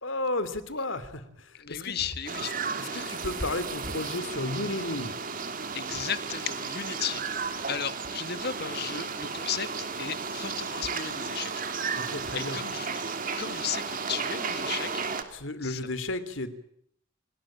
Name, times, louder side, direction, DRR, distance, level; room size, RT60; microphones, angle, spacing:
voice 1, 0.0-1.2 1.7-1.9 2.8-5.1 11.9-12.6 15.3-16.5, left 2 dB, 75° left, 14 dB, 3.0 m, -32 dB
voice 2, 1.6-3.3 5.7-9.7 10.0-12.0 12.3-13.0 13.4-15.0 15.6-15.8, left 8 dB, 55° left, 12 dB, 1.8 m, -35 dB
sound 1, 2.3-15.2, right 5 dB, 45° right, 3.1 m, -34 dB
29.5 x 19.0 x 9.0 m, 0.71 s
head